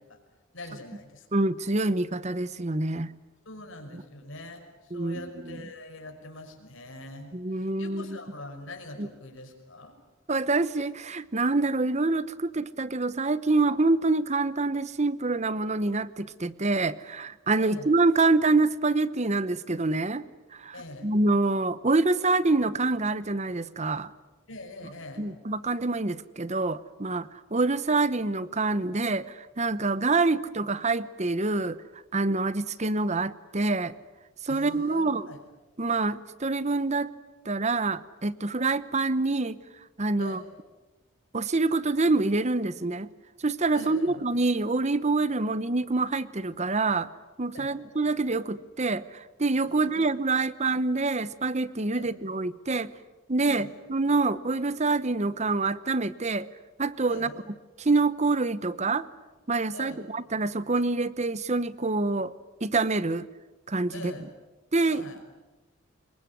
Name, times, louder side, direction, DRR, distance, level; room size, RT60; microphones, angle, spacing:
voice 1, 0.5-1.3 3.5-9.9 17.6-17.9 20.7-21.1 24.5-25.3 34.5-35.4 40.2-40.4 43.7-44.2 47.5-47.7 49.7-50.0 51.9-52.1 53.5-53.7 57.1-57.3 59.7-60.0 63.9-64.3 64.9-65.2, left 2 dB, 65° left, 4 dB, 5.5 m, -43 dB
voice 2, 1.3-3.1 4.9-5.6 7.3-8.2 9.0-9.1 10.3-20.2 20.5-24.1 25.2-31.8 32.1-33.9 34.4-35.3 35.8-37.1 37.4-39.6 40.0-40.4 41.3-43.1 43.4-47.1 47.4-52.9 53.3-56.5 56.8-57.3 57.8-59.1 59.5-62.3 62.6-63.3 63.7-64.1 64.7-65.0, right 3 dB, 35° right, 16 dB, 0.9 m, -26 dB
26.5 x 23.0 x 9.9 m, 1.2 s
head